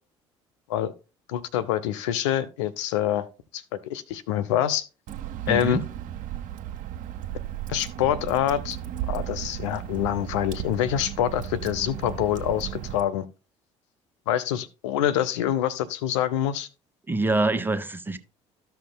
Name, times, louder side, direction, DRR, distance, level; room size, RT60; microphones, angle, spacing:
voice 1, 1.3-3.3 3.5-4.8 5.5-5.8 7.7-8.8 9.1-13.3 14.3-16.7, left 11 dB, 85° left, 0.6 m, -26 dB
Water / Drip, 5.1-13.0, right 11 dB, 60° right, 1.1 m, -35 dB
voice 2, 5.5-5.8 17.1-18.2, right 2 dB, 15° right, 1.0 m, -25 dB
14.0 x 5.7 x 2.2 m
hypercardioid pair, 65°, 15 cm